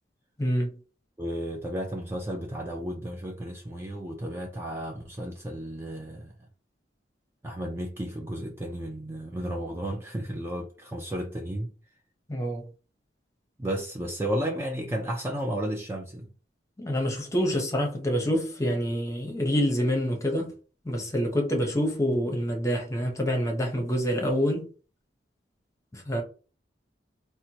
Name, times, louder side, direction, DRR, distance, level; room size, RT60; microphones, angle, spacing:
voice 1, 0.4-0.7 12.3-12.7 16.8-20.5 20.8-24.7 25.9-26.2, equal, 15° left, 0.7 m, -27 dB
voice 2, 1.2-6.3 7.4-11.7 13.6-16.3, right 1 dB, 15° right, 0.4 m, -33 dB
4.3 x 2.1 x 2.8 m
head